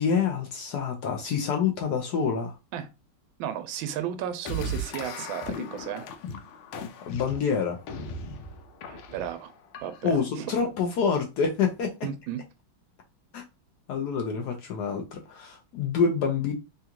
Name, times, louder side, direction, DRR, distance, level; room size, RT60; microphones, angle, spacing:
voice 1, 0.0-2.5 7.1-7.8 10.0-11.9 13.3-13.4 13.9-16.5, left 6 dB, 70° left, 1.0 m, -27 dB
voice 2, 3.4-6.0 8.9-9.5 9.8-10.5 12.0-12.4, right 9 dB, 80° right, 1.4 m, -34 dB
sound 1, 4.4-10.3, left 1 dB, 90° left, 1.5 m, -37 dB
3.7 x 2.3 x 2.8 m
omnidirectional pair, 2.2 m